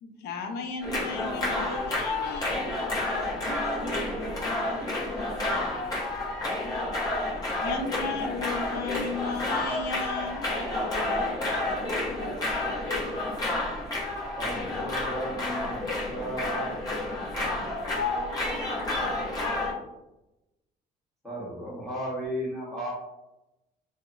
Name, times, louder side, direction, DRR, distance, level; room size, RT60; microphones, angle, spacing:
voice 1, 0.0-2.6 7.6-10.5, left 4 dB, 75° left, 5 dB, 0.5 m, -34 dB
sound 1, 0.8-19.7, left 2 dB, 20° left, 0.8 m, -30 dB
voice 2, 3.4-6.1 10.9-13.1 17.3-19.8, right 3 dB, 40° right, 2 dB, 0.5 m, -43 dB
voice 3, 14.3-16.7 19.2-19.4 21.2-22.9, equal, ahead, -8 dB, 1.2 m, -35 dB
2.8 x 2.0 x 2.4 m, 0.96 s
cardioid pair, 110°, 17 cm